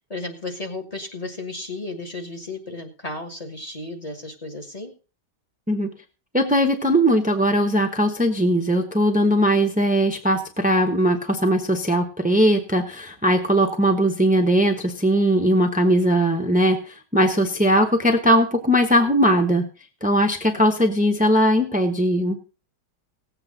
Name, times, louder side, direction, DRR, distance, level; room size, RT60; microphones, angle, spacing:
voice 1, 0.1-4.9 20.5-20.6, left 2 dB, 20° left, 3 dB, 1.6 m, -34 dB
voice 2, 6.3-19.6 20.0-22.3, equal, 10° right, 5 dB, 0.3 m, -19 dB
17.5 x 7.9 x 3.9 m, 0.35 s
omnidirectional pair, 1.9 m